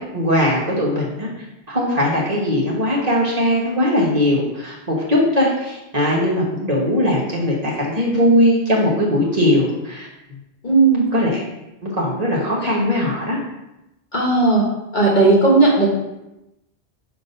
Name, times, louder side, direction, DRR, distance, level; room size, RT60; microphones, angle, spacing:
voice 1, 0.1-1.3 1.7-10.1 11.1-11.4 11.8-13.4, left 1 dB, 35° right, -5 dB, 1.3 m, -19 dB
voice 2, 10.6-11.0 14.1-14.6 14.9-15.9, right 3 dB, 45° left, -4 dB, 1.4 m, -15 dB
7.0 x 2.6 x 5.5 m, 0.94 s
omnidirectional pair, 1.1 m